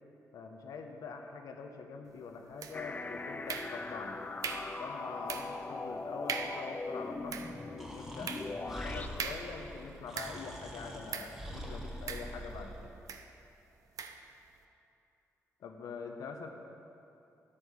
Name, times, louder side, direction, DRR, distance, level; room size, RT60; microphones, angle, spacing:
voice 1, 0.3-4.2 4.8-12.9 15.6-16.5, left 5 dB, 80° left, 4 dB, 1.0 m, -44 dB
sound 1, 2.6-3.0 3.5-4.0 4.4-4.8 5.3-5.6 5.9-6.0 6.3-6.7 7.1-10.6 11.1-11.4 12.1-12.7 13.1-13.3 14.0-14.3, right 6 dB, 75° right, 0.6 m, -41 dB
sound 2, 2.7-9.1, left 3 dB, 25° left, 0.5 m, -40 dB
Breathing, 7.8-12.9, equal, 5° right, 1.5 m, -44 dB
10.0 x 8.5 x 5.7 m, 2.7 s
cardioid pair, 75°, 6 cm